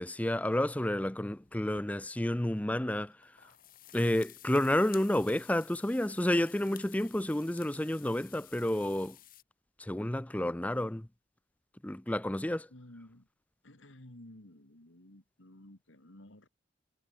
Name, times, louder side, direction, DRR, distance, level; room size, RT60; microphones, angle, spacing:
voice 1, 0.0-3.1 3.9-9.2 9.8-11.1 11.8-12.7, left 1 dB, 10° left, 0.5 m, -30 dB
sound 1, 1.3-2.1 3.1-9.4, left 13 dB, 50° left, 1.8 m, -54 dB
voice 2, 12.7-13.3 13.6-16.5, left 1 dB, 90° left, 3.4 m, -53 dB
head